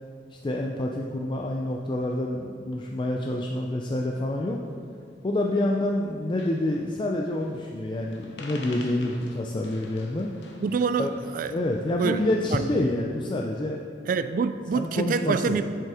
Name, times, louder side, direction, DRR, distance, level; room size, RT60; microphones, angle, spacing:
voice 1, 0.3-4.6 5.2-10.3 11.0-11.1 11.5-13.8 14.7-15.6, left 1 dB, 25° left, 0 dB, 0.4 m, -27 dB
sound 1, 5.2-5.8 6.1-6.2 6.4-6.9 7.4-7.8 8.0-12.4, left 2 dB, 75° left, 0.8 m, -47 dB
voice 2, 10.6-11.1 11.3-11.6 12.0-12.2 12.5-12.6 14.1-15.6, right 5 dB, 50° right, 12 dB, 0.3 m, -26 dB
7.3 x 5.4 x 4.8 m, 2.4 s
head